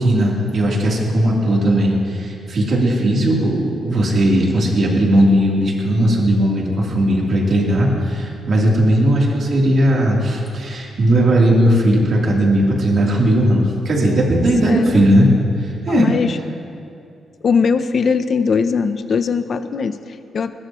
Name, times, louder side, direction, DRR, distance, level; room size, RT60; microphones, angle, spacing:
voice 1, 0.0-15.3 15.6-16.1, right 1 dB, 50° right, -3 dB, 3.5 m, -17 dB
voice 2, 14.6-15.0 15.9-16.4 17.4-20.5, left 5 dB, 45° left, 10 dB, 0.7 m, -20 dB
21.0 x 20.0 x 3.2 m, 2.6 s
cardioid pair, 140°, 0 cm